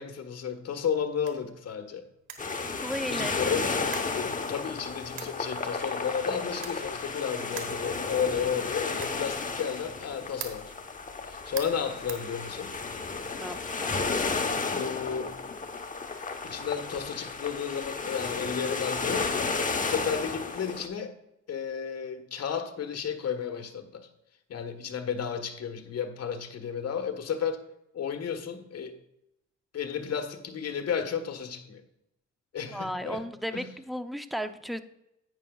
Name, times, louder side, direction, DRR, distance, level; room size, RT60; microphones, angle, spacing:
voice 1, 0.0-2.0 3.0-3.7 4.1-10.7 11.3-12.7 14.7-15.4 16.4-21.1 21.5-24.1 24.5-27.6 27.9-29.0 29.7-31.8 32.5-33.2 33.5-33.7, left 7 dB, 55° left, 5 dB, 1.3 m, -33 dB
sound 1, 1.1-13.0, right 8 dB, 90° right, 1.3 m, -47 dB
sound 2, 2.4-20.9, left 4 dB, 25° left, 1.0 m, -33 dB
voice 2, 2.8-4.0 13.3-14.0 19.8-19.9 32.7-34.8, equal, ahead, 9 dB, 0.6 m, -35 dB
11.0 x 8.9 x 2.3 m, 0.85 s
cardioid pair, 90°, 30 cm